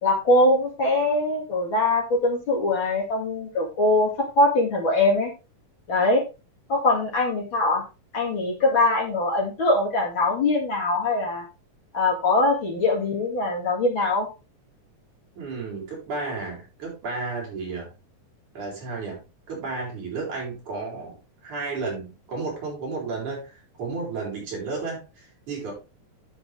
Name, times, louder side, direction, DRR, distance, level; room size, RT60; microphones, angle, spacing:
voice 1, 0.0-5.3 5.9-6.2 6.7-7.8 8.1-11.4 11.9-14.3, left 2 dB, 45° left, 0 dB, 2.8 m, -22 dB
voice 2, 15.4-17.9 18.5-19.2 19.5-25.7, right 4 dB, 85° right, -2 dB, 6.1 m, -33 dB
9.7 x 7.9 x 3.4 m, 0.29 s
omnidirectional pair, 3.4 m